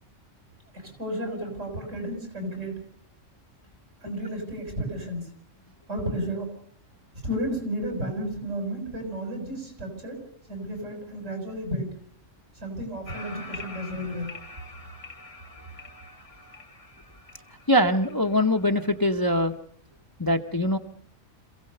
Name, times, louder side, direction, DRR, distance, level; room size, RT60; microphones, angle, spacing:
voice 1, 0.7-2.8 4.0-5.3 5.9-6.5 7.2-11.9 12.5-14.3, equal, 80° right, 3 dB, 6.7 m, -32 dB
sound 1, 13.1-19.5, left 2 dB, 85° left, 2.8 m, -45 dB
voice 2, 17.7-19.5 20.2-20.8, left 1 dB, 20° left, 6 dB, 0.8 m, -22 dB
26.5 x 16.5 x 6.7 m, 0.63 s
omnidirectional pair, 1.3 m